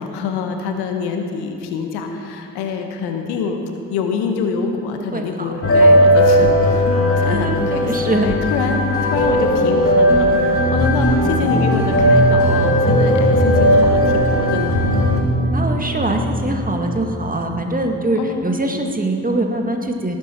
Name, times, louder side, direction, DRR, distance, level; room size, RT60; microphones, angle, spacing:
voice 1, 0.0-3.6 3.9-8.8 9.1-14.7 18.1-18.4, left 5 dB, 70° left, 5 dB, 1.3 m, -25 dB
voice 2, 5.1-6.0 7.2-8.3 15.5-20.2, right 2 dB, 20° right, 3 dB, 1.8 m, -23 dB
sound 1, 5.6-15.2, equal, 35° left, 2.3 m, -16 dB
sound 2, 10.5-17.2, equal, 60° right, 2.4 m, -22 dB
18.5 x 9.3 x 4.5 m, 2.6 s
hypercardioid pair, 40°, 41 cm